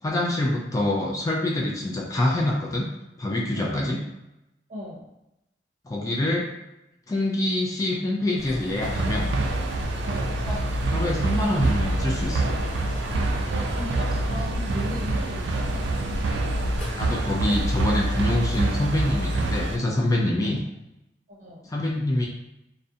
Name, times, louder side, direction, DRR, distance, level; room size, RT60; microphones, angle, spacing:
voice 1, 0.0-2.9 3.2-4.0 5.8-6.4 7.1-9.3 10.5-10.6 10.9-12.5 17.0-20.6 21.7-22.3, left 1 dB, 20° left, -2 dB, 0.3 m, -25 dB
voice 2, 3.6-3.9 4.7-5.1 10.0-10.4 13.5-16.2 20.4-20.6 21.3-21.7, left 1 dB, 45° right, -3 dB, 0.7 m, -38 dB
sound 1, 8.4-17.3, equal, 45° left, 0.7 m, -37 dB
sound 2, 8.8-19.8, right 2 dB, 80° right, 0.3 m, -26 dB
2.4 x 2.1 x 2.6 m, 0.90 s
head